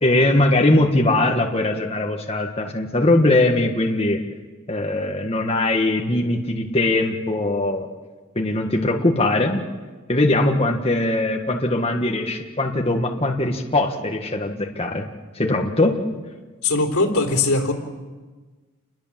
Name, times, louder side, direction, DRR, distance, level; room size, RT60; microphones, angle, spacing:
voice 1, 0.0-4.2 4.7-7.9 8.3-9.6 10.1-15.1 15.3-16.0, left 2 dB, 25° left, 1 dB, 1.6 m, -20 dB
voice 2, 16.6-17.7, left 2 dB, 80° left, 2 dB, 3.7 m, -20 dB
29.0 x 21.5 x 7.5 m, 1.3 s
head